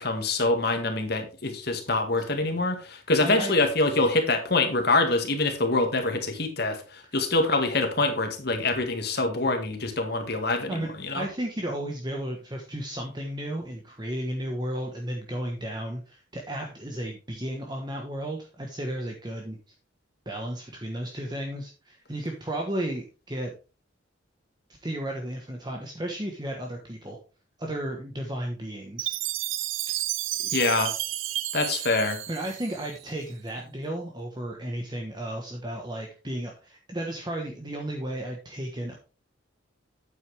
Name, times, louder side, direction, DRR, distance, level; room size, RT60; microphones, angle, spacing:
voice 1, 0.0-11.3 30.5-30.9 31.5-32.2, left 2 dB, 50° left, 5 dB, 1.9 m, -25 dB
voice 2, 3.2-3.5 10.7-10.9 11.1-19.6 20.2-23.5 24.8-27.2 27.6-29.2 32.3-38.9, right 1 dB, 20° right, 1 dB, 1.2 m, -33 dB
Chime, 29.0-33.2, right 14 dB, 80° right, 0.7 m, -32 dB
9.1 x 8.0 x 3.4 m, 0.34 s
head